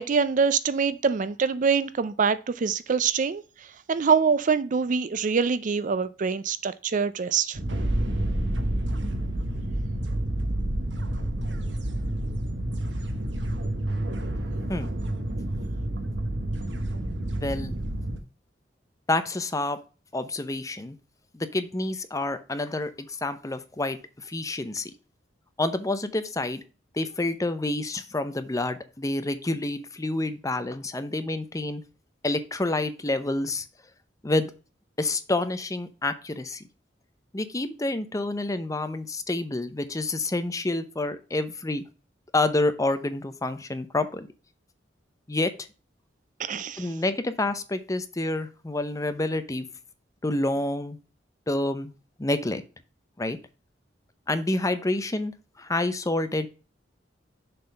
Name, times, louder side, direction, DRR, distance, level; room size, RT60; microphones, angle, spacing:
voice 1, 0.0-3.4 3.9-7.6 46.4-46.9, right 5 dB, 45° right, 0.4 m, -24 dB
sound 1, 7.5-18.2, right 1 dB, 75° right, 1.2 m, -29 dB
voice 2, 17.4-17.7 19.1-19.8 20.1-21.0 21.3-24.9 25.6-26.6 26.9-31.8 32.2-33.7 34.2-34.5 35.0-36.6 37.3-41.8 42.3-44.3 45.3-45.5 46.8-49.7 50.2-51.0 51.5-51.9 52.2-52.6 53.2-53.4 54.3-56.5, left 2 dB, 20° left, 0.7 m, -28 dB
6.7 x 4.1 x 5.3 m
head